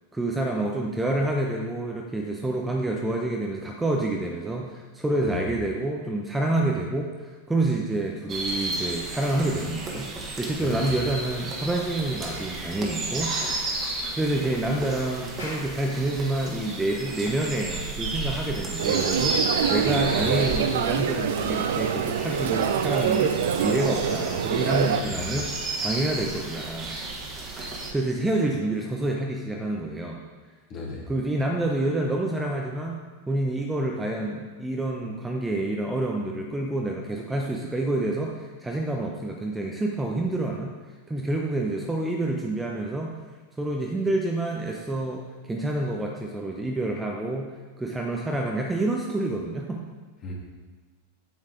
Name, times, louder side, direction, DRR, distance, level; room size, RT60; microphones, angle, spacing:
voice 1, 0.1-10.1 10.4-13.3 13.7-13.8 14.2-26.9 27.6-30.2 31.1-33.0 33.3-40.7 41.1-43.1 43.6-49.8, right 2 dB, 10° right, 0 dB, 0.7 m, -28 dB
sound 1, 8.3-27.9, right 2 dB, 25° right, 1.6 m, -33 dB
Clapping, 15.4-20.1, left 1 dB, 70° left, 2.2 m, -45 dB
sound 2, 18.8-25.0, right 8 dB, 60° right, 0.4 m, -25 dB
voice 2, 19.8-20.4 25.1-25.4 30.7-31.0 50.2-50.3, left 2 dB, 30° left, -3 dB, 2.4 m, -35 dB
8.7 x 7.2 x 3.8 m, 1.4 s
figure-of-eight pair, 90°, 0 cm